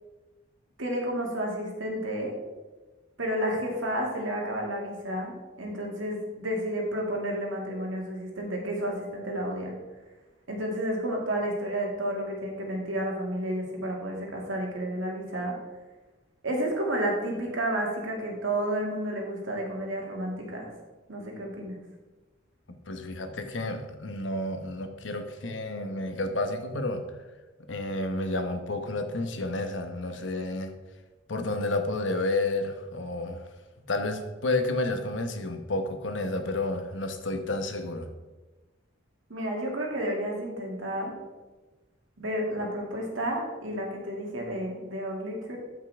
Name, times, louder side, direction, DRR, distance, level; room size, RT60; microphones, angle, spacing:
voice 1, 0.8-2.3 3.2-9.8 10.5-15.6 16.4-20.7 21.1-21.8 39.3-41.1 42.2-45.6, right 1 dB, 85° right, -1 dB, 2.2 m, -31 dB
voice 2, 22.7-27.0 27.7-30.7 31.3-33.5 33.8-38.1, left 2 dB, 70° left, 6 dB, 1.0 m, -31 dB
12.5 x 5.7 x 3.5 m, 1.2 s
head